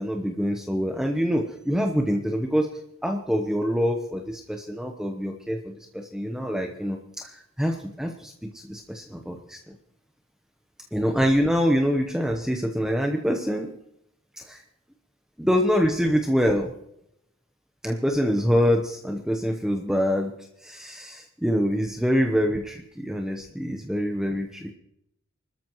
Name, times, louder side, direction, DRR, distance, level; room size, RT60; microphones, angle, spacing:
voice 1, 0.0-2.7 3.0-9.8 10.9-13.7 14.4-14.6 15.4-16.7 17.8-20.3 20.6-24.7, equal, 5° right, 2 dB, 0.8 m, -25 dB
25.5 x 13.0 x 3.1 m, 0.79 s
head